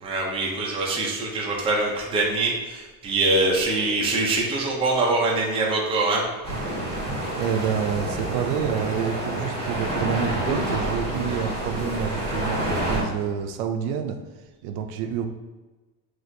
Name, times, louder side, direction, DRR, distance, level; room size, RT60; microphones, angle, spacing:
voice 1, 0.0-6.3, right 2 dB, 15° right, -3 dB, 0.5 m, -24 dB
sound 1, 6.4-13.0, right 1 dB, 15° left, 1.4 m, -28 dB
voice 2, 7.3-14.2 14.6-15.3, right 7 dB, 70° right, 6 dB, 0.5 m, -28 dB
6.2 x 2.4 x 2.6 m, 1.2 s
cardioid pair, 170°, 42 cm